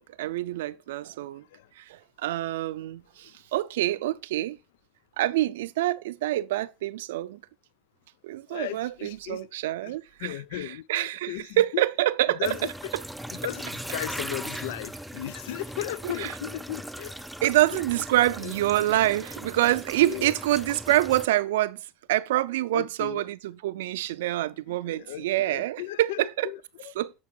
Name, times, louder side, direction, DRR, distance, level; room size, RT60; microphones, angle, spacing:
voice 1, 0.0-1.4 1.8-4.6 5.2-7.4 8.2-12.6 12.9-13.0 16.0-16.3 17.4-21.8 22.1-26.5 27.0-27.1, right 15 dB, 90° right, 0.4 m, -26 dB
voice 2, 8.5-9.5 9.8-11.8 12.3-12.9 13.3-17.1 17.7-17.8 18.4-18.5 20.0-20.3 22.7-23.2 24.7-26.9, left 14 dB, 85° left, 0.3 m, -36 dB
sound 1, 12.4-21.3, equal, ahead, 0.5 m, -39 dB
8.4 x 4.5 x 4.4 m
supercardioid pair, 95°, 0 cm